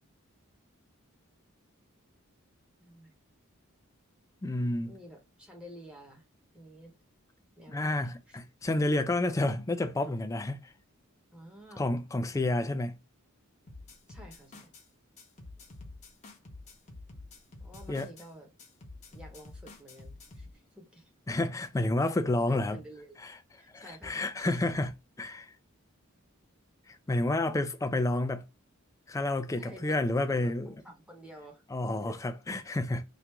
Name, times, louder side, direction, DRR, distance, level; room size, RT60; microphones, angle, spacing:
voice 1, 2.8-3.1 4.9-6.2 6.5-6.9 7.6-8.4 11.3-11.9 14.1-14.7 17.6-18.5 19.1-21.1 22.5-23.2 23.6-24.6 29.6-30.0 30.3-31.6 32.0-32.2, right 1 dB, 5° right, 0.9 m, -50 dB
voice 2, 4.4-4.9 7.7-10.7 11.8-13.0 17.9-18.1 21.3-22.8 23.7-24.9 25.2-25.5 26.9-28.4 29.1-30.7 31.7-33.0, left 2 dB, 15° left, 0.3 m, -30 dB
sound 1, 13.7-14.8 15.2-18.3 18.6-20.5, left 2 dB, 35° left, 0.8 m, -48 dB
2.9 x 2.5 x 3.4 m
head